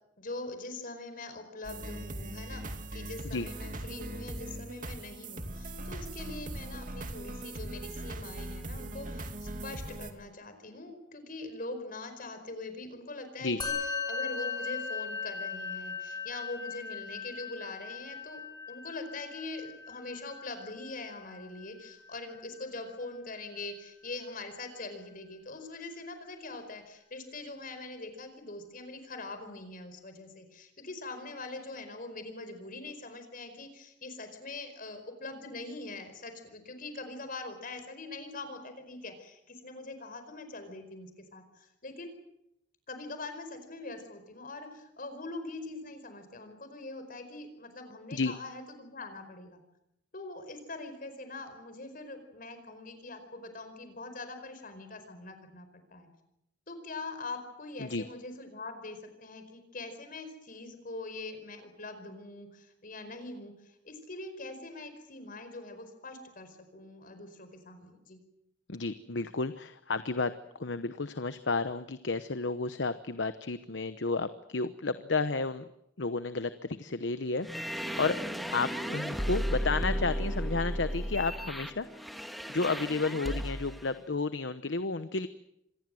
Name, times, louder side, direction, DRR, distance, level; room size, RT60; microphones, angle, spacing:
voice 1, 0.2-13.7 14.1-18.4 18.7-42.1 42.9-49.6 50.1-56.1 56.7-68.2, left 2 dB, 50° left, 8 dB, 4.8 m, -43 dB
sound 1, 1.6-10.1, right 1 dB, 45° right, 2.5 m, -40 dB
Musical instrument, 13.6-23.1, left 5 dB, 25° left, 4.9 m, -39 dB
voice 2, 68.7-70.3 70.6-75.6 76.0-77.5 78.0-78.2 78.5-82.2 82.5-85.3, left 3 dB, 75° left, 11 dB, 1.0 m, -32 dB
sound 2, 77.4-83.8, equal, ahead, 1.5 m, -34 dB
26.5 x 20.5 x 7.8 m, 0.82 s
head